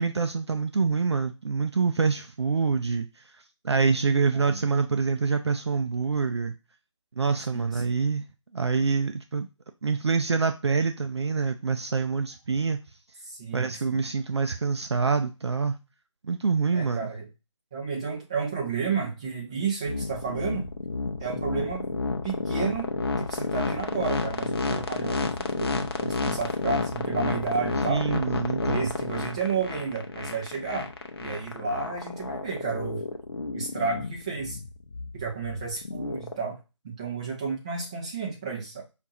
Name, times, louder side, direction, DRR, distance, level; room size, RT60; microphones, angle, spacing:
voice 1, 0.0-3.1 3.6-6.5 7.2-8.2 8.5-9.5 9.8-12.8 13.5-15.8 16.2-17.1 27.9-28.9, right 5 dB, 60° right, 0.4 m, -26 dB
voice 2, 7.5-7.9 13.3-14.0 16.7-17.3 17.7-20.7 21.2-21.9 22.2-22.9 23.2-28.1 28.6-30.9 31.2-33.0 33.5-34.6 35.1-36.6 36.8-38.8, right 5 dB, 10° right, 0.5 m, -32 dB
sound 1, 19.9-36.4, left 3 dB, 50° left, 0.6 m, -30 dB
5.2 x 2.5 x 2.7 m
figure-of-eight pair, 160°, 16 cm